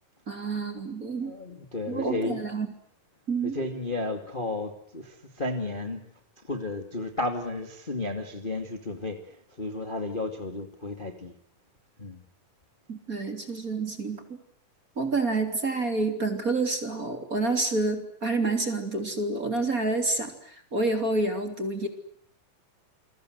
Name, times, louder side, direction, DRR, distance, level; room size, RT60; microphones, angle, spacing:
voice 1, 0.3-1.3 1.9-2.7 3.3-3.6 12.9-14.4 15.0-21.9, right 3 dB, 25° right, 6 dB, 3.4 m, -28 dB
voice 2, 1.2-2.5 3.4-6.0 6.4-11.3 12.0-12.2, left 2 dB, 15° left, 5 dB, 2.1 m, -33 dB
29.0 x 23.0 x 8.0 m, 0.65 s
omnidirectional pair, 3.8 m